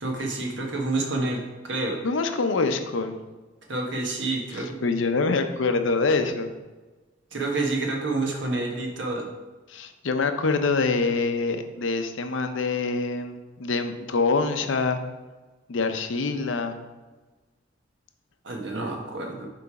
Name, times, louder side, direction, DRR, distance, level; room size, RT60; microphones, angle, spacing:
voice 1, 0.0-2.0 3.7-4.7 7.3-9.3 18.4-19.5, right 2 dB, 70° right, 1 dB, 1.3 m, -28 dB
voice 2, 2.0-3.1 4.5-6.5 9.7-15.0 15.7-16.8, left 4 dB, 80° left, 7 dB, 0.6 m, -25 dB
7.8 x 3.3 x 4.7 m, 1.2 s
head